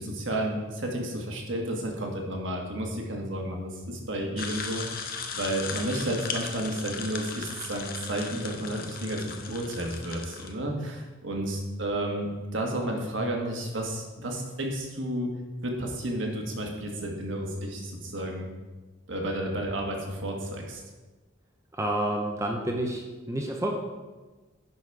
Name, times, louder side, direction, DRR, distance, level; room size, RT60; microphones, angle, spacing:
voice 1, 0.0-15.3 15.6-18.5 19.1-20.8, right 1 dB, 60° right, 1 dB, 1.5 m, -32 dB
sound 1, 4.4-10.5, left 5 dB, 45° left, 0.8 m, -37 dB
voice 2, 21.7-23.7, right 1 dB, 15° right, 1 dB, 0.7 m, -29 dB
10.5 x 4.1 x 4.7 m, 1.2 s
head